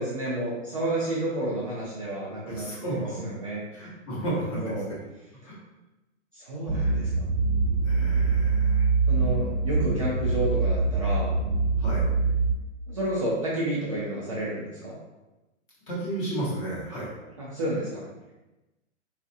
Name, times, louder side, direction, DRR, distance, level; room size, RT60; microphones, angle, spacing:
voice 1, 0.0-2.7 2.9-3.9 4.5-4.9 6.3-7.3 9.1-11.3 12.9-14.9 17.4-18.0, right 1 dB, 30° right, -8 dB, 0.4 m, -30 dB
voice 2, 2.5-3.2 3.7-4.9 5.4-5.6 6.7-6.9 7.8-8.9 11.8-12.1 15.9-17.1, right 1 dB, 25° left, -6 dB, 0.8 m, -33 dB
sound 1, 6.7-12.5, right 4 dB, 85° right, 0.6 m, -24 dB
4.1 x 2.3 x 2.6 m, 1.0 s
hypercardioid pair, 170°, 37 cm